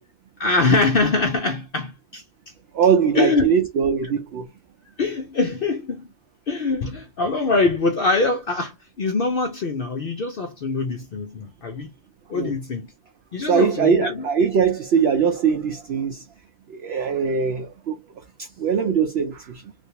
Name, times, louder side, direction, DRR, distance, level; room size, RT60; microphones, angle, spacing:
voice 1, 0.4-2.2 3.1-3.6 4.0-4.1 5.0-6.1 6.5-11.9 12.3-12.9 13.3-14.3, left 3 dB, 65° left, 0.5 m, -23 dB
voice 2, 2.7-4.5 12.3-12.5 13.5-16.2 16.7-18.0 18.4-19.6, right 6 dB, 65° right, 0.6 m, -21 dB
3.3 x 2.6 x 2.8 m
omnidirectional pair, 1.5 m